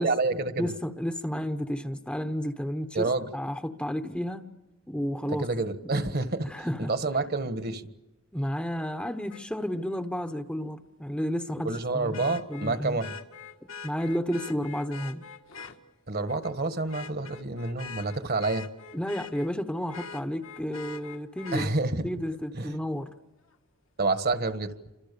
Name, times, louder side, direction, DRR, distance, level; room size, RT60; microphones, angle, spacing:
voice 1, 0.0-0.7 2.9-3.3 5.4-7.9 11.6-13.1 16.1-18.7 21.5-22.0 22.5-22.8 24.0-24.7, right 3 dB, 45° right, 1.5 m, -28 dB
voice 2, 0.6-4.5 4.9-5.5 6.4-6.9 8.3-13.0 13.8-15.2 18.9-21.7 22.0-23.1, equal, 5° left, 1.0 m, -32 dB
Vehicle horn car horn honking, 9.3-9.4 12.1-15.8 16.3-16.5 16.9-19.5 19.9-21.7 23.5-23.6, left 5 dB, 70° left, 2.0 m, -43 dB
29.5 x 26.0 x 6.9 m
head